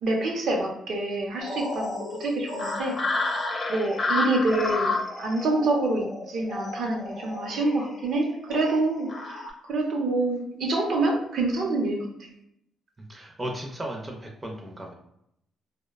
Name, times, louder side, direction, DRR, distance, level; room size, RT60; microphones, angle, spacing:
voice 1, 0.0-3.3 3.7-4.9 5.2-9.4 9.7-12.0, right 2 dB, 70° right, 0 dB, 0.6 m, -26 dB
sound 1, 1.4-9.5, left 3 dB, 40° left, 0.5 m, -31 dB
voice 2, 13.1-14.9, right 1 dB, 20° right, 0 dB, 0.4 m, -35 dB
2.7 x 2.1 x 2.3 m, 0.76 s
cardioid pair, 90°, 0 cm